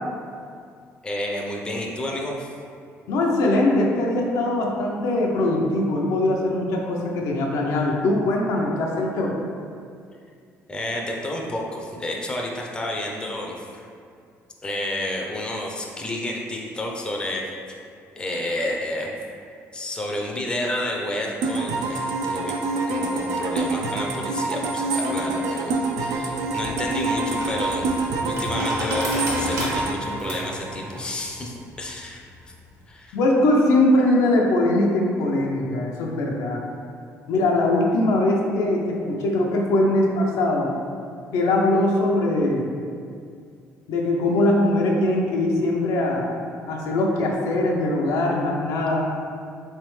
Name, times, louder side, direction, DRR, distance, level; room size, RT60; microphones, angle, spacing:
voice 1, 1.0-2.5 10.7-13.9 14.6-17.5 18.2-19.1 19.7-22.6 22.9-32.5 32.9-33.2, left 1 dB, 15° left, -1 dB, 0.4 m, -30 dB
voice 2, 3.1-9.3 33.1-36.6 37.3-40.7 41.3-42.7 43.9-46.3 46.7-49.1, left 1 dB, 80° left, -1 dB, 0.5 m, -21 dB
sound 1, 21.4-31.1, right 2 dB, 80° right, 0.4 m, -26 dB
sound 2, 26.1-32.8, right 1 dB, 65° right, 1.0 m, -33 dB
3.3 x 3.3 x 3.1 m, 2.3 s
cardioid pair, 110°, 6 cm